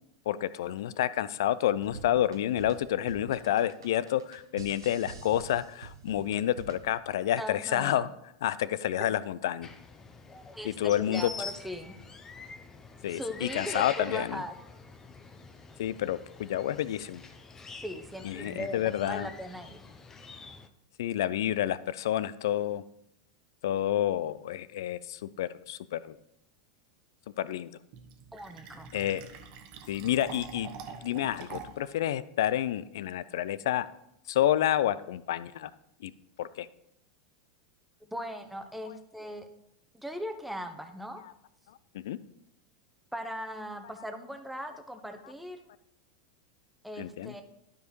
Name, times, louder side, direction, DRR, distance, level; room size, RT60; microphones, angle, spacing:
voice 1, 0.3-8.1 8.4-9.7 10.6-11.3 13.0-14.4 15.8-17.2 18.2-19.3 21.0-22.8 23.6-26.2 27.4-27.7 28.9-29.2 29.9-30.7 31.0-33.9 34.3-35.7 36.0-36.1 36.4-36.7 41.7-42.2 47.0-47.3, left 12 dB, 70° left, 17 dB, 0.4 m, -29 dB
sound 1, 1.7-7.0, right 6 dB, 85° right, 0.7 m, -46 dB
voice 2, 7.4-8.0 10.5-12.0 13.1-14.5 17.8-19.9 28.3-28.9 38.0-39.4 39.9-41.2 43.1-45.7 46.8-47.4, equal, 5° right, 6 dB, 0.9 m, -39 dB
sound 2, 9.6-20.7, left 4 dB, 20° left, 0.7 m, -46 dB
Fill (with liquid), 27.9-31.9, right 6 dB, 50° right, 0.9 m, -45 dB
12.5 x 4.9 x 3.2 m, 0.80 s
hypercardioid pair, 95°, 2 cm